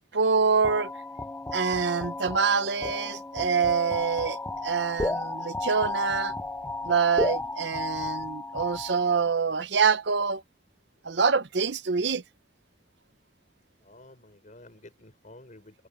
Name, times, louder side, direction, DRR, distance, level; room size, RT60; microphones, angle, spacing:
voice 1, 0.1-0.9 1.5-6.3 6.8-10.4 11.0-12.2, right 5 dB, 80° right, 0.8 m, -25 dB
sound 1, 0.6-9.4, left 2 dB, 10° left, 0.4 m, -33 dB
voice 2, 13.8-15.9, left 2 dB, 45° left, 4.8 m, -51 dB
head